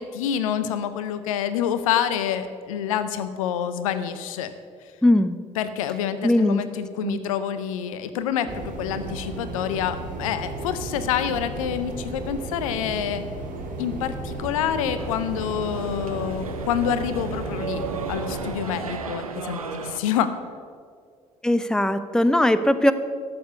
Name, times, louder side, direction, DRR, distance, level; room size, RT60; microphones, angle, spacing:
voice 1, 0.0-4.5 5.6-13.2 13.8-20.3, left 9 dB, 75° left, 11 dB, 0.6 m, -27 dB
voice 2, 5.0-5.3 6.2-6.6 7.0-7.2 21.4-22.9, left 1 dB, 5° left, 13 dB, 0.7 m, -19 dB
sound 1, 8.5-18.5, right 3 dB, 50° right, 1.9 m, -34 dB
sound 2, 15.0-20.0, right 5 dB, 85° right, 0.6 m, -34 dB
13.0 x 6.9 x 6.7 m, 2.1 s
figure-of-eight pair, 50°, 18 cm